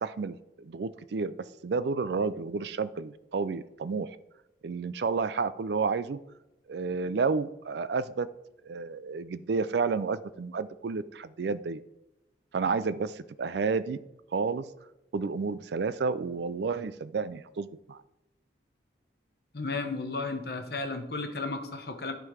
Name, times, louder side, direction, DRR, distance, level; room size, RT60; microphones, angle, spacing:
voice 1, 0.0-1.4 1.6-4.2 4.6-6.2 6.7-8.3 8.6-11.8 12.5-14.0 14.3-14.7 15.1-18.0, right 4 dB, 65° right, 15 dB, 0.4 m, -31 dB
voice 2, 19.5-22.1, left 3 dB, 55° left, 6 dB, 1.0 m, -33 dB
10.5 x 3.8 x 4.9 m, 0.92 s
head